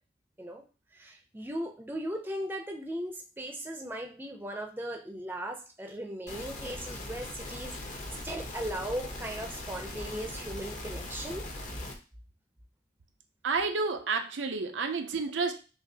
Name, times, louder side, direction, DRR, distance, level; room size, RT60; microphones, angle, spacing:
voice 1, 0.9-11.5, right 1 dB, 10° right, 2 dB, 0.5 m, -38 dB
sound 1, 6.3-11.9, left 2 dB, 40° left, 0.9 m, -40 dB
voice 2, 13.4-15.6, right 4 dB, 85° right, 7 dB, 0.5 m, -30 dB
5.9 x 2.4 x 2.7 m, 0.34 s
head